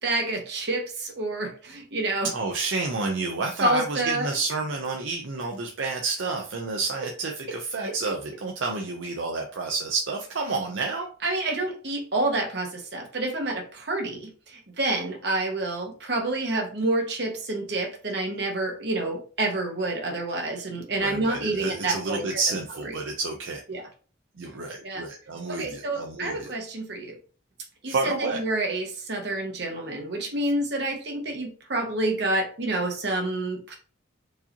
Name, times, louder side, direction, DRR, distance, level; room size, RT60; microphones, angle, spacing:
voice 1, 0.0-2.3 3.6-4.3 11.2-22.2 23.7-23.8 24.8-25.0 25.5-27.1 27.8-33.8, right 2 dB, 60° right, 2 dB, 1.1 m, -28 dB
voice 2, 2.3-11.1 21.0-23.6 24.4-26.6 27.9-28.4, right 3 dB, 75° right, 2 dB, 0.6 m, -30 dB
4.7 x 2.8 x 2.8 m, 0.38 s
head